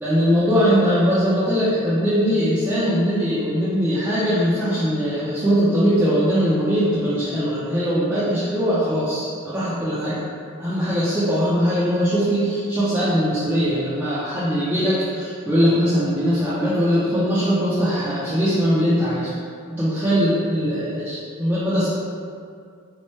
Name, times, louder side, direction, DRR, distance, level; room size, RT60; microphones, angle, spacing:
voice 1, 0.0-10.2 10.6-19.3 19.7-21.9, equal, 10° right, -12 dB, 0.4 m, -21 dB
4.2 x 2.1 x 3.0 m, 2.3 s
head